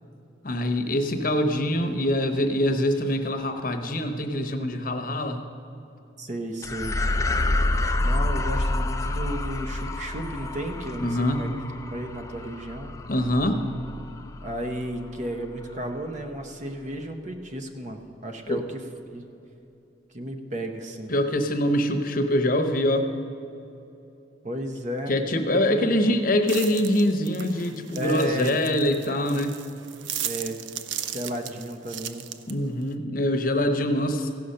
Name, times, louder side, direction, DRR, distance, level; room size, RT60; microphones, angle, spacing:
voice 1, 0.4-5.4 11.0-11.4 13.1-13.6 18.5-18.6 21.1-23.1 25.1-29.6 32.5-34.3, left 1 dB, 50° left, 6 dB, 0.8 m, -24 dB
voice 2, 6.2-7.0 8.0-11.5 11.9-12.9 14.4-18.8 19.1-19.2 20.1-21.1 24.4-25.1 25.7-26.1 27.9-28.9 30.2-30.6 31.1-32.3, right 1 dB, 40° right, 5 dB, 0.9 m, -33 dB
sound 1, 6.6-15.3, left 2 dB, 15° left, 0.4 m, -28 dB
sound 2, 26.5-32.9, right 10 dB, 85° right, 0.5 m, -37 dB
15.5 x 5.6 x 6.5 m, 2.9 s
head